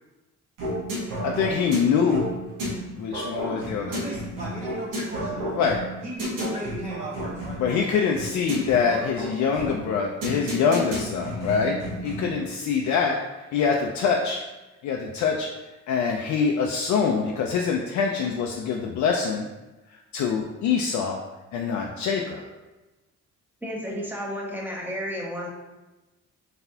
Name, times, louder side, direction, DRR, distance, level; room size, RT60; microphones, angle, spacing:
sound 1, 0.6-12.4, equal, 90° right, 1.5 m, -32 dB
voice 1, 1.2-2.3 3.0-4.0 5.6-5.8 7.6-11.8 12.0-14.4 14.8-15.5 15.9-19.5 20.1-21.2 21.5-22.4, left 6 dB, 70° left, 0 dB, 0.5 m, -24 dB
voice 2, 3.8-5.6 6.0-7.6, right 1 dB, 25° right, -5 dB, 0.7 m, -36 dB
voice 3, 23.6-25.5, equal, 5° right, -3 dB, 0.9 m, -32 dB
4.0 x 3.4 x 2.7 m, 1.1 s
cardioid pair, 90°, 30 cm